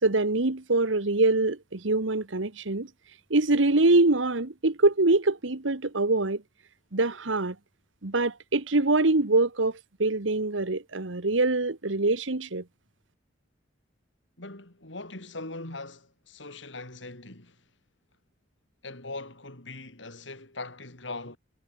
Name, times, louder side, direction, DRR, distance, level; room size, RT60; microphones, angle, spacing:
voice 1, 0.0-2.9 3.3-6.4 6.9-7.6 8.0-12.6, right 2 dB, 80° right, 1.5 m, -24 dB
voice 2, 14.4-17.6 18.8-21.4, left 2 dB, 70° left, 4.3 m, -41 dB
head